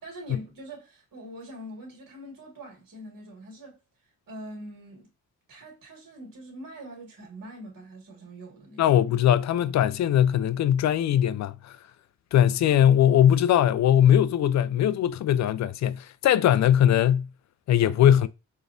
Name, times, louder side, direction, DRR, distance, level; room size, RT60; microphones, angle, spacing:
voice 1, 0.0-3.8 4.3-5.1 5.5-8.9, right 1 dB, 50° right, 1.7 m, -43 dB
voice 2, 8.8-11.8 12.3-17.3 17.7-18.3, left 10 dB, 45° left, 0.4 m, -20 dB
4.1 x 2.4 x 2.5 m
hypercardioid pair, 40°, 43 cm